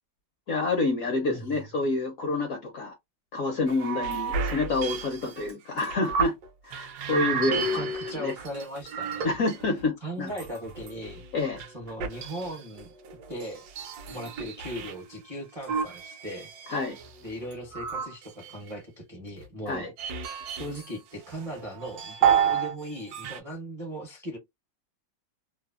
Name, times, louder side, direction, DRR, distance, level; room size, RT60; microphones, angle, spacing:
voice 1, 0.5-3.0 3.3-6.3 6.6-7.9 8.2-8.3 9.2-10.3 11.3-11.6 16.7-17.0 19.7-19.9, left 3 dB, 65° left, 0.8 m, -28 dB
sound 1, 3.7-6.5 6.7-9.8 10.3-14.9 15.6-18.7 19.4-20.9 21.3-22.7 23.0-23.4, right 6 dB, 70° right, 1.0 m, -31 dB
voice 2, 7.3-9.3 10.0-11.2 11.7-12.9 13.3-13.7 13.9-16.5 17.2-19.9 20.5-24.4, right 1 dB, 40° right, 0.5 m, -38 dB
3.2 x 2.0 x 2.3 m
omnidirectional pair, 2.0 m